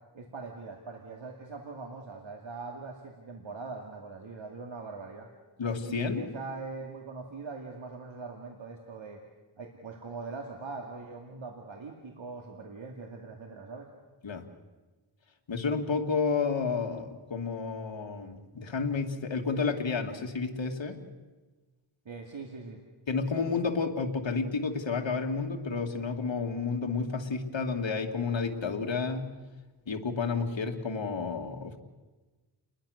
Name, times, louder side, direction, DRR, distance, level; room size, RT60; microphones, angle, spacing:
voice 1, 0.1-5.3 5.8-9.2 9.6-13.9 22.1-22.8, right 4 dB, 90° right, 2 dB, 2.4 m, -42 dB
voice 2, 5.6-6.2 14.2-14.4 15.5-21.0 23.1-29.3 29.9-31.8, left 4 dB, 75° left, 3 dB, 2.3 m, -31 dB
29.5 x 21.5 x 6.5 m, 1.2 s
wide cardioid pair, 75°, 45 cm